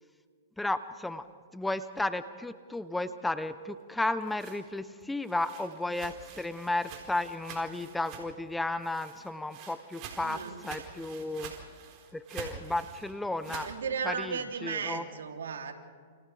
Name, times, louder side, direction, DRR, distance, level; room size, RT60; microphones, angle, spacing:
voice 1, 0.6-1.3 1.5-11.5 12.1-13.7 14.0-15.0, left 2 dB, 5° left, 12 dB, 0.7 m, -33 dB
sound 1, 4.0-8.5 8.8-13.8, right 7 dB, 40° right, 4.6 m, -47 dB
voice 2, 10.2-10.6 13.4-15.7, right 6 dB, 85° right, 3 dB, 3.1 m, -35 dB
29.5 x 28.0 x 3.4 m, 2.1 s
hypercardioid pair, 135°, 0 cm